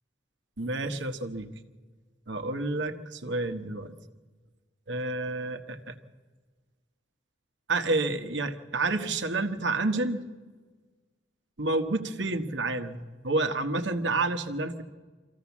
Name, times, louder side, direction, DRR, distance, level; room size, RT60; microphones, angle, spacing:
voice 1, 0.6-1.5 2.3-3.9 4.9-5.9 7.7-10.2 11.6-14.8, right 2 dB, 80° right, 7 dB, 1.3 m, -29 dB
24.5 x 15.5 x 7.3 m, 1.4 s
head